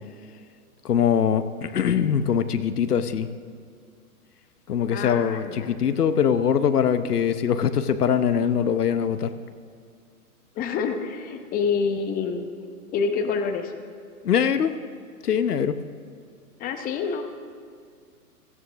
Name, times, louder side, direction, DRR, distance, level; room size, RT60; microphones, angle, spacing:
voice 1, 0.8-3.3 4.7-9.3 14.2-14.7 15.2-15.8, left 8 dB, 75° left, 11 dB, 1.0 m, -22 dB
voice 2, 4.9-5.8 10.5-12.5 12.9-13.7 16.6-17.2, left 5 dB, 20° left, 6 dB, 1.0 m, -27 dB
17.0 x 14.0 x 3.5 m, 2.3 s
figure-of-eight pair, 120°, 47 cm